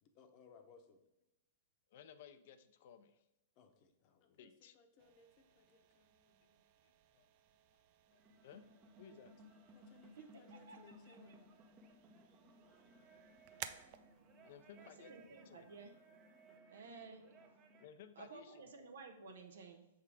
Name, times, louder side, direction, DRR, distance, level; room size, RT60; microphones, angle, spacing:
voice 1, 0.0-1.0 3.6-4.5 4.7-6.6 9.7-10.1 10.4-11.5, left 5 dB, 40° left, 0.9 m, -65 dB
voice 2, 1.9-3.2 4.4-4.8 6.8-7.3 8.1-8.7 9.0-9.3 12.9-13.0 13.7-13.8 14.4-15.1 15.5-15.7 16.6-16.7 17.8-18.6, left 8 dB, 60° left, 0.6 m, -58 dB
sound 1, 5.0-16.6, right 11 dB, 50° right, 0.4 m, -58 dB
sound 2, 8.1-17.9, right 1 dB, 25° right, 0.8 m, -62 dB
voice 3, 10.5-11.4 14.8-15.9 16.7-17.3 18.1-19.9, right 4 dB, 80° right, 1.1 m, -55 dB
6.4 x 3.6 x 4.8 m
hypercardioid pair, 130°, 0 cm